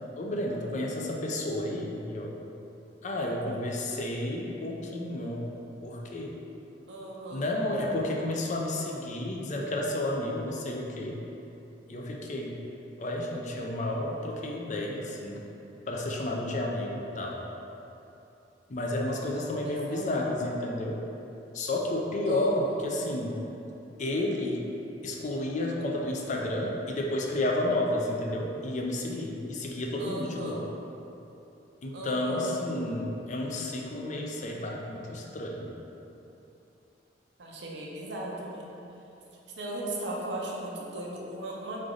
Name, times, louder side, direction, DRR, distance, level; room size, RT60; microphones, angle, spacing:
voice 1, 0.2-2.3 3.0-5.5 5.8-6.3 7.3-11.2 11.9-12.6 13.0-15.4 15.9-17.4 18.7-21.0 21.5-23.4 24.0-24.7 25.0-30.6 31.8-35.7, left 1 dB, 40° left, -1 dB, 0.5 m, -31 dB
voice 2, 6.9-7.4 19.4-20.2 22.2-22.8 30.0-30.6 31.9-32.5 37.4-38.6 39.6-41.8, right 2 dB, 70° right, -3 dB, 0.7 m, -37 dB
3.8 x 3.3 x 3.8 m, 2.9 s
head